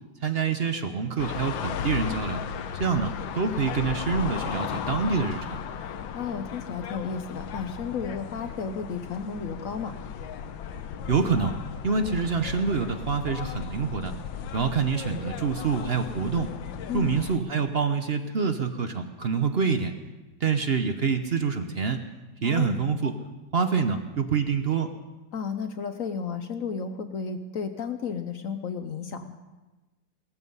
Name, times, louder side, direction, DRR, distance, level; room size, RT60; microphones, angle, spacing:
voice 1, 0.2-2.4 2.8-5.6 11.1-11.5 11.8-14.1 14.5-16.5 16.9-19.9 20.4-22.0 22.4-23.2 23.5-24.9, right 5 dB, 55° right, 7 dB, 0.7 m, -26 dB
sound 1, 1.2-17.4, left 8 dB, 85° left, 1.6 m, -36 dB
voice 2, 6.1-9.9 16.9-17.2 22.4-22.8 25.3-29.4, left 6 dB, 60° left, 9 dB, 0.9 m, -33 dB
18.5 x 14.0 x 5.5 m, 1.2 s
omnidirectional pair, 2.1 m